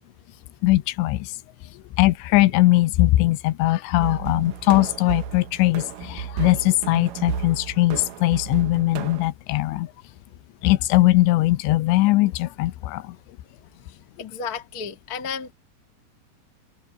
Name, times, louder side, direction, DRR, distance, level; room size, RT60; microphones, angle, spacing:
voice 1, 0.6-1.3 2.0-9.9 10.6-13.2, left 18 dB, 85° left, 3.0 m, -20 dB
sound 1, 4.0-9.3, right 9 dB, 70° right, 2.1 m, -33 dB
voice 2, 14.2-15.5, left 6 dB, 40° left, 1.3 m, -32 dB
open air
omnidirectional pair, 5.0 m